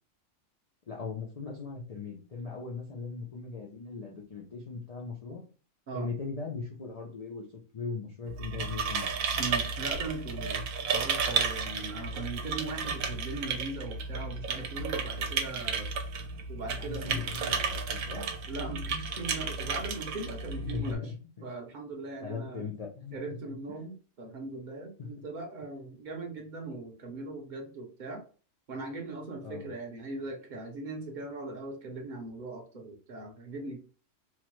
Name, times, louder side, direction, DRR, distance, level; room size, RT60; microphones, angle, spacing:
voice 1, 0.9-5.4 5.9-7.4 7.7-9.1 16.8-18.3 20.5-21.0 22.2-23.2 23.4-23.5 29.4-29.6, left 5 dB, 75° left, -2 dB, 0.3 m, -38 dB
sound 1, 8.3-20.9, right 5 dB, 80° right, 1.0 m, -33 dB
voice 2, 9.4-15.9 16.5-17.3 18.5-21.1 21.4-22.7 23.1-28.2 28.7-33.8, right 3 dB, 50° right, 2 dB, 0.6 m, -40 dB
2.9 x 2.1 x 2.9 m, 0.37 s
omnidirectional pair, 1.4 m